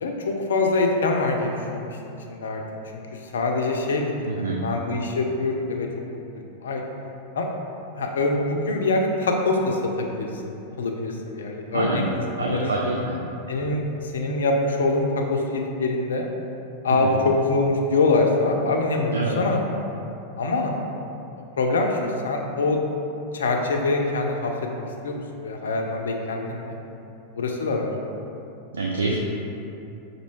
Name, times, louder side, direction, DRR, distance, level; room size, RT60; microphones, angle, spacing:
voice 1, 0.0-2.6 2.9-3.0 3.3-6.8 7.3-7.5 8.0-12.1 12.4-12.7 13.5-13.8 14.1-16.2 16.8-19.1 19.4-19.6 20.4-20.7 21.6-22.8 23.3-24.5 25.0-26.8 27.4-27.9 29.1-29.2, left 3 dB, 65° left, 1 dB, 0.4 m, -24 dB
voice 2, 4.3-4.6 11.7-12.0 12.4-13.2 17.0-17.1 19.1-19.4 28.7-29.2, right 3 dB, 70° right, -1 dB, 0.3 m, -26 dB
5.2 x 2.6 x 3.0 m, 2.9 s
figure-of-eight pair, 90°, 0 cm